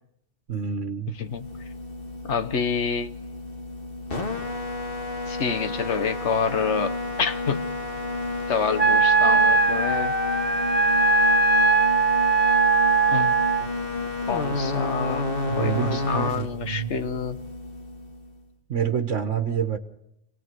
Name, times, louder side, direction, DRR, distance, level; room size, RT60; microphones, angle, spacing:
voice 1, 0.5-1.1 15.5-16.9 18.7-19.8, right 8 dB, 85° right, 1.5 m, -27 dB
voice 2, 1.1-1.5 2.3-3.1 5.3-7.6 8.5-10.1 13.1-13.7 14.3-15.3 15.6-17.4, left 6 dB, 75° left, 1.4 m, -27 dB
sound 1, 1.2-18.4, left 2 dB, 50° left, 2.1 m, -31 dB
Wind instrument woodwind instrument, 8.8-13.7, right 4 dB, 10° right, 0.6 m, -20 dB
27.0 x 18.5 x 6.8 m
omnidirectional pair, 1.2 m